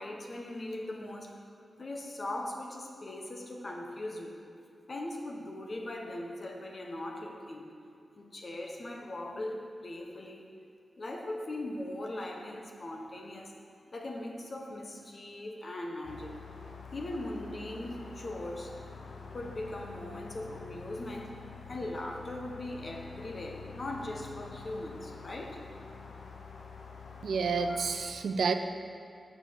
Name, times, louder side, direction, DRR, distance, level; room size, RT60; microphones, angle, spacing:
voice 1, 0.0-1.5 1.8-4.4 4.9-7.7 8.2-10.4 11.0-13.5 13.9-16.3 16.9-18.7 19.3-21.3 21.7-25.6 27.7-27.8, left 1 dB, 40° left, 2 dB, 1.1 m, -39 dB
sound 1, 16.0-28.0, left 5 dB, 85° left, 0.8 m, -47 dB
voice 2, 27.2-28.5, right 5 dB, 80° right, 7 dB, 0.5 m, -29 dB
7.2 x 6.5 x 6.8 m, 2.6 s
wide cardioid pair, 140°, 0 cm